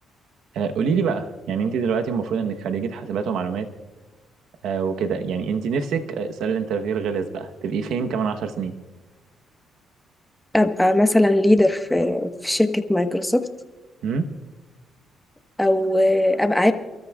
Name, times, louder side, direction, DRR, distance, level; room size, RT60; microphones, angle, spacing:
voice 1, 0.5-3.7 4.6-8.7 14.0-14.3, right 6 dB, 80° right, 6 dB, 1.0 m, -25 dB
voice 2, 10.5-13.5 15.6-16.7, left 1 dB, 5° left, 7 dB, 1.2 m, -19 dB
29.5 x 13.5 x 2.4 m, 1.3 s
cardioid pair, 90°, 0 cm